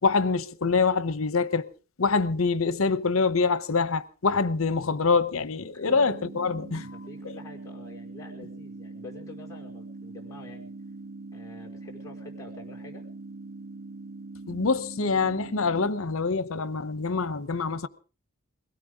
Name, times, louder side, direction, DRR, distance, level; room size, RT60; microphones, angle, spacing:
voice 1, 0.0-1.7 2.0-6.9 14.5-17.9, left 4 dB, 75° left, 0.9 m, -25 dB
sound 1, 5.9-15.9, right 3 dB, 75° right, 0.9 m, -42 dB
voice 2, 6.9-10.7 11.3-13.1, left 2 dB, 15° left, 4.9 m, -47 dB
22.5 x 17.0 x 3.7 m
head